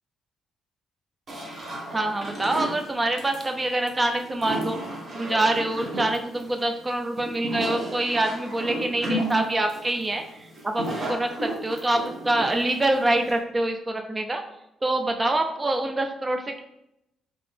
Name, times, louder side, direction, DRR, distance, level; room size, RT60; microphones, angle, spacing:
sound 1, 1.3-13.4, right 1 dB, 45° right, 1.0 m, -33 dB
voice 1, 1.9-4.8 5.1-10.2 10.6-14.4 14.8-16.6, right 2 dB, 20° right, 5 dB, 0.5 m, -25 dB
3.7 x 2.8 x 3.4 m, 0.83 s
cardioid pair, 90°, 0 cm